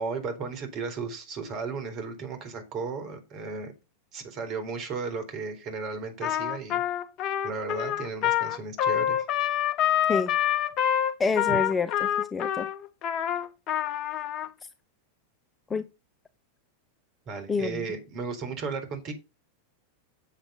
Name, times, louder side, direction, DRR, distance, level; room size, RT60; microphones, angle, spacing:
voice 1, 0.0-3.7 4.1-6.8 7.4-9.3 11.5-11.6 17.3-19.1, right 4 dB, 35° right, 4.1 m, -35 dB
Trumpet, 6.2-14.5, left 10 dB, 35° left, 1.1 m, -27 dB
voice 2, 11.2-12.7 15.7-15.8 17.5-17.7, left 4 dB, 15° left, 0.7 m, -27 dB
8.3 x 7.4 x 5.6 m
figure-of-eight pair, 90°, 0 cm